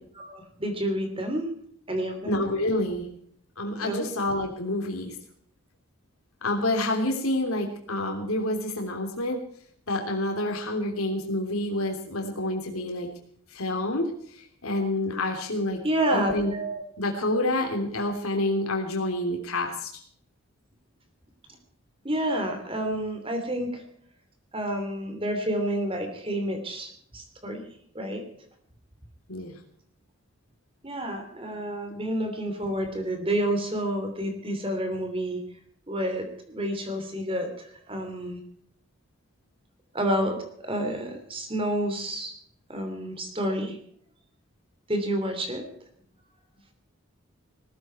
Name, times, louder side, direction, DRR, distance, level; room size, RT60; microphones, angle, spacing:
voice 1, 0.2-1.5 1.9-2.4 3.8-4.0 15.8-16.8 22.0-23.8 24.5-27.6 27.9-28.2 30.8-35.4 35.9-38.4 39.9-40.4 40.6-42.3 42.7-43.8 44.9-45.6, right 1 dB, 25° right, 6 dB, 2.9 m, -29 dB
voice 2, 2.2-3.1 3.6-5.2 6.4-9.4 9.9-13.1 13.5-15.8 16.1-16.5 17.0-20.0 29.3-29.6, left 1 dB, 90° left, 2 dB, 3.3 m, -28 dB
19.5 x 14.5 x 4.5 m, 0.63 s
head